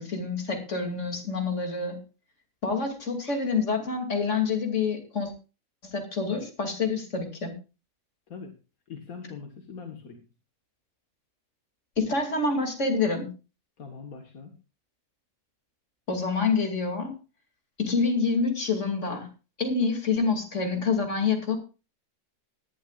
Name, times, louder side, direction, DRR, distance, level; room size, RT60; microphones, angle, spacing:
voice 1, 0.0-2.0 2.6-5.3 5.8-7.6 12.0-13.3 16.1-17.1 17.8-19.3 19.6-21.6, left 4 dB, 55° left, 4 dB, 3.0 m, -27 dB
voice 2, 8.9-10.2 13.8-14.5, left 5 dB, 80° left, 4 dB, 2.0 m, -42 dB
19.0 x 11.5 x 2.4 m, 0.31 s
omnidirectional pair, 1.5 m